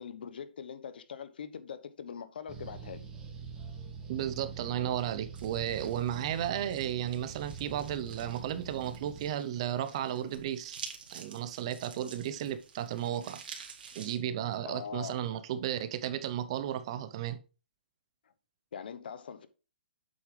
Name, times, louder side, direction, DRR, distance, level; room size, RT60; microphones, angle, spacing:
voice 1, 0.0-3.1 14.6-15.2 18.7-19.5, left 7 dB, 65° left, 1.0 m, -42 dB
sound 1, 2.5-9.3, right 6 dB, 15° right, 1.4 m, -44 dB
voice 2, 4.1-10.8 11.1-13.6 13.9-17.4, right 10 dB, 35° right, 0.6 m, -34 dB
sound 2, 5.3-14.2, right 6 dB, 60° right, 2.1 m, -50 dB
7.8 x 7.4 x 3.3 m
hypercardioid pair, 165°, 6 cm